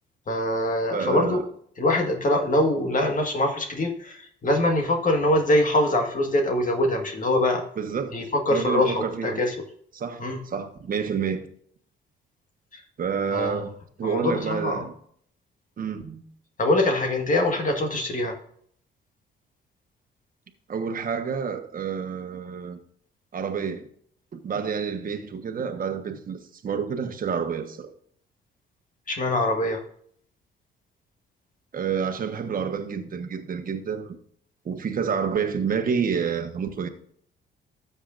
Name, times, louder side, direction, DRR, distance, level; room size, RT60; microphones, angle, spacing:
voice 1, 0.3-1.4 1.8-7.6 8.1-9.5 10.2-10.4 12.7-12.8 13.3-13.6 14.0-14.8 16.6-18.3 29.1-29.8, left 1 dB, 40° left, 1.7 m, -23 dB
voice 2, 0.9-1.4 7.8-8.2 8.5-9.4 9.9-11.5 13.0-13.7 14.0-14.9 15.8-16.2 20.7-22.8 23.3-23.9 24.3-27.9 31.7-34.2 34.6-36.9, right 6 dB, 45° right, 1.3 m, -29 dB
13.0 x 7.2 x 2.6 m
cardioid pair, 90°, 20 cm